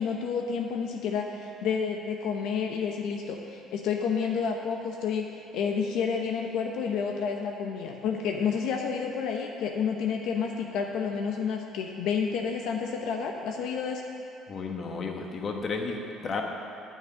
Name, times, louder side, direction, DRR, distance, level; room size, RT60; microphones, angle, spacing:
voice 1, 0.0-14.0, left 6 dB, 75° left, 2 dB, 0.8 m, -30 dB
voice 2, 14.5-16.4, left 4 dB, 40° left, 2 dB, 1.2 m, -33 dB
9.4 x 6.1 x 8.6 m, 2.6 s
cardioid pair, 120°, 0 cm